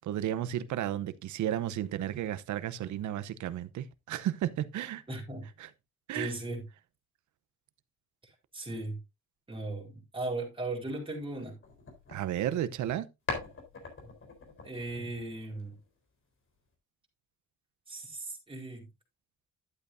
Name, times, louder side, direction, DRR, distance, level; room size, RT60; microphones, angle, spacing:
voice 1, 0.0-5.0 5.6-5.7 6.1-6.3 12.1-13.1, right 11 dB, 75° right, 0.8 m, -33 dB
voice 2, 5.1-5.5 6.1-6.6 8.5-9.0 9.5-11.6 14.0-14.1 14.6-15.8 17.9-18.9, right 2 dB, 15° right, 4.4 m, -37 dB
sound 1, 11.6-13.0 13.3-15.9, left 3 dB, 45° left, 3.8 m, -42 dB
11.5 x 8.3 x 2.6 m
cardioid pair, 90°, 30 cm